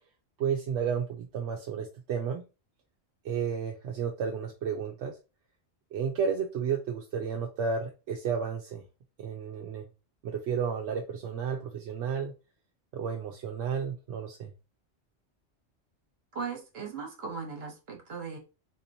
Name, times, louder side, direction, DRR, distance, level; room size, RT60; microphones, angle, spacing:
voice 1, 0.4-2.4 3.2-5.1 5.9-8.8 9.2-9.8 10.2-12.3 12.9-14.5, right 6 dB, 80° right, 1 dB, 0.9 m, -32 dB
voice 2, 16.3-18.4, right 5 dB, 60° right, 2 dB, 1.3 m, -38 dB
3.9 x 2.9 x 2.7 m, 0.29 s
omnidirectional pair, 1.2 m